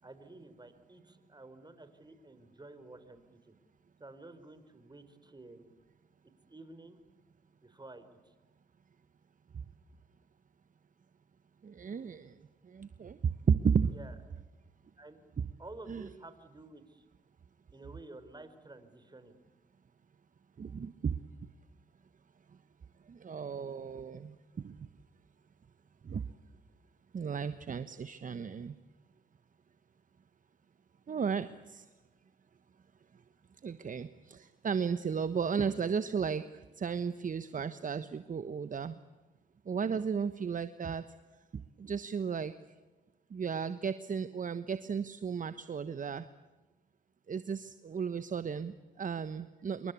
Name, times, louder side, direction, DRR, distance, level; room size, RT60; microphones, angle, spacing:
voice 1, 0.0-3.5 4.0-5.7 6.2-7.0 7.6-8.3 13.9-14.1 15.0-15.2 15.6-17.0 17.7-19.4, right 2 dB, 20° right, 11 dB, 4.9 m, -51 dB
voice 2, 11.6-12.4 12.7-13.9 15.4-15.5 15.9-16.1 20.6-21.2 23.1-24.8 26.0-26.2 27.1-28.7 31.1-31.8 33.6-36.5 36.8-39.0 39.7-41.0 41.5-42.5 43.3-46.2 47.3-49.9, right 6 dB, 45° right, 12 dB, 1.2 m, -34 dB
27.0 x 23.5 x 8.5 m, 1.2 s
supercardioid pair, 55°, 19 cm